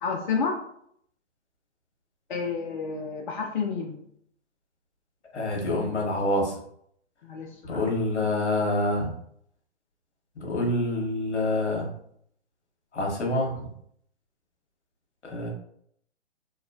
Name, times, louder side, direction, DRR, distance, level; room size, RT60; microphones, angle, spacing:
voice 1, 0.0-0.6 2.3-4.0 7.2-7.8, left 5 dB, 45° left, 0 dB, 0.4 m, -30 dB
voice 2, 5.3-6.5 7.6-9.1 10.4-11.9 12.9-13.7 15.3-15.5, left 1 dB, 70° left, -1 dB, 1.2 m, -26 dB
2.9 x 2.7 x 2.4 m, 0.68 s
figure-of-eight pair, 130°, 36 cm